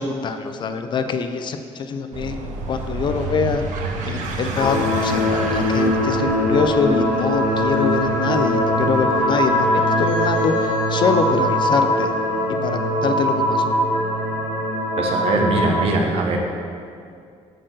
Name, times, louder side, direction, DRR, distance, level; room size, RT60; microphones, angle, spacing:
voice 1, 0.0-3.6 4.0-12.1 12.6-13.7, left 5 dB, 40° left, 8 dB, 0.4 m, -24 dB
sound 1, 2.1-13.2, right 3 dB, 90° right, 1.0 m, -31 dB
sound 2, 4.6-15.8, equal, 85° left, 1.5 m, -21 dB
voice 2, 15.0-16.4, right 2 dB, 50° right, 2 dB, 1.0 m, -21 dB
7.7 x 4.3 x 6.3 m, 2.4 s
cardioid pair, 160°, 13 cm